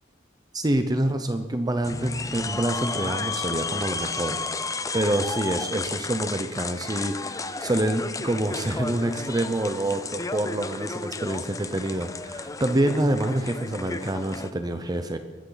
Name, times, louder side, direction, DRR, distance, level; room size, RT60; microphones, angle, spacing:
voice 1, 0.5-4.4 4.9-15.2, right 1 dB, 20° right, 7 dB, 0.7 m, -27 dB
sound 1, 1.8-14.5, left 4 dB, 15° left, 0.5 m, -33 dB
22.5 x 13.0 x 4.0 m, 1.4 s
head